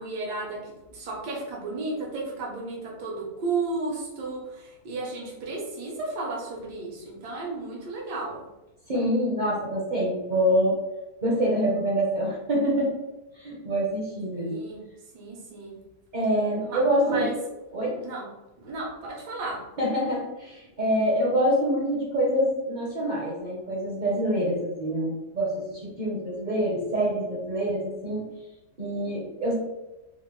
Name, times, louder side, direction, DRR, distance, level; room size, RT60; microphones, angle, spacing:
voice 1, 0.0-8.4 14.3-14.8 15.1-15.7 16.7-17.4 18.0-18.3 18.6-19.6, right 3 dB, 80° right, -3 dB, 1.5 m, -33 dB
voice 2, 8.9-10.8 11.2-12.9 13.4-14.6 16.1-17.3 17.7-18.0 19.8-28.3 28.8-29.5, equal, 45° right, -5 dB, 0.6 m, -26 dB
3.9 x 2.1 x 3.0 m, 0.99 s
omnidirectional pair, 1.7 m